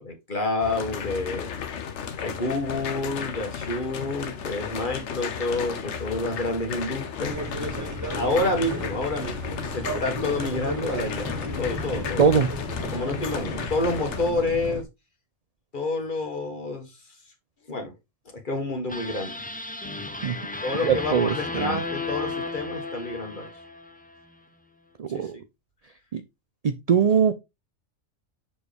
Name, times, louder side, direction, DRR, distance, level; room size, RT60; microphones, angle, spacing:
voice 1, 0.0-1.5 2.2-7.4 8.1-11.3 11.6-12.3 12.9-14.8 15.7-17.0 17.7-17.9 18.4-19.3 20.6-23.5 25.1-25.4, left 2 dB, 40° left, 1.6 m, -29 dB
sound 1, 0.6-14.3, left 7 dB, 65° left, 1.1 m, -34 dB
sound 2, 7.3-14.8, right 1 dB, 15° right, 1.0 m, -34 dB
voice 2, 12.2-12.5 20.2-20.4 20.8-21.8 25.0-25.4 26.1-26.2 26.6-27.3, right 6 dB, 65° right, 0.3 m, -21 dB
sound 3, 18.9-24.2, left 3 dB, 10° left, 0.5 m, -34 dB
6.9 x 4.3 x 3.4 m
omnidirectional pair, 1.3 m